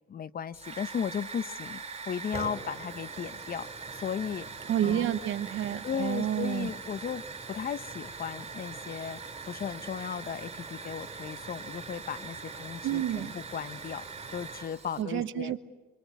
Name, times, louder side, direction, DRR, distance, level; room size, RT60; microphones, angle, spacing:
voice 1, 0.1-4.5 4.8-5.1 5.8-7.2 7.5-14.1 14.3-15.5, left 7 dB, 50° left, 0.9 m, -36 dB
Hiss / Fire, 0.5-15.0, right 4 dB, 30° right, 5.8 m, -42 dB
voice 2, 4.7-6.7 12.8-13.3 15.0-15.6, right 11 dB, 80° right, 1.0 m, -29 dB
26.5 x 25.5 x 8.2 m
cardioid pair, 90°, 20 cm